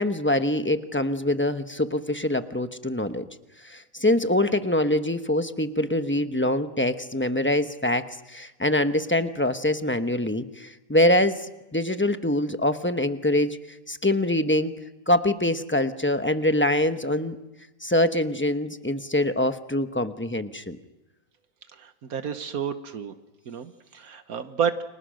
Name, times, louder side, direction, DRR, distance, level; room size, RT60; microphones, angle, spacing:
voice 1, 0.0-3.3 3.6-13.6 13.9-14.7 15.1-17.4 17.8-20.8, left 1 dB, 10° left, 9 dB, 0.8 m, -24 dB
voice 2, 21.7-23.1 23.5-24.8, right 7 dB, 80° right, 9 dB, 1.6 m, -30 dB
30.0 x 25.5 x 6.5 m, 1.0 s
omnidirectional pair, 1.5 m